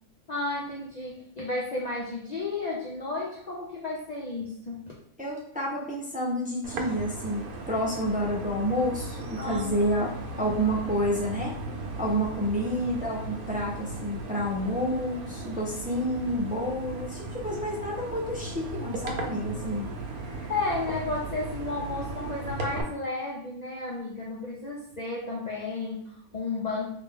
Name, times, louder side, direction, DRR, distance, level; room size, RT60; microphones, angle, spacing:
voice 1, 0.3-4.9 9.4-10.1 19.2-19.8 20.5-27.0, left 3 dB, 85° left, -4 dB, 0.3 m, -33 dB
voice 2, 5.2-7.4 7.7-10.1 10.4-11.5 12.0-19.9 20.2-20.5, equal, 10° right, -4 dB, 0.3 m, -29 dB
sound 1, 6.6-22.8, right 2 dB, 85° right, 1.2 m, -37 dB
3.1 x 2.9 x 3.4 m, 0.72 s
omnidirectional pair, 1.5 m